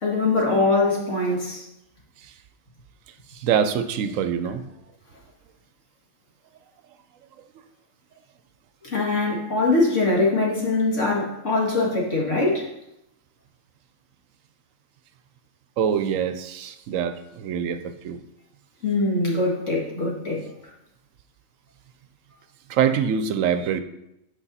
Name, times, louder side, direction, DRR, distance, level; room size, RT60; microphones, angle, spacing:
voice 1, 0.0-1.7 8.8-12.7 18.8-20.4, left 2 dB, 60° left, -3 dB, 2.1 m, -22 dB
voice 2, 3.3-4.7 15.8-18.2 22.7-23.8, right 8 dB, 75° right, 10 dB, 1.0 m, -24 dB
8.4 x 5.1 x 4.1 m, 0.84 s
omnidirectional pair, 1.4 m